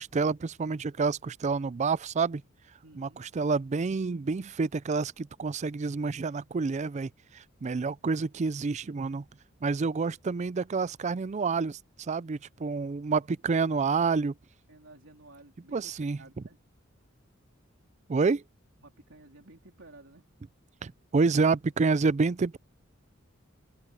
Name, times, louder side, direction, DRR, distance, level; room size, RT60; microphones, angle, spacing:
voice 1, 0.0-2.4 3.0-9.2 9.6-14.3 15.7-16.2 18.1-18.4 20.8-22.6, right 4 dB, 35° right, 0.4 m, -28 dB
voice 2, 2.8-3.2 14.7-16.6 18.8-20.2, right 2 dB, 70° right, 3.9 m, -53 dB
head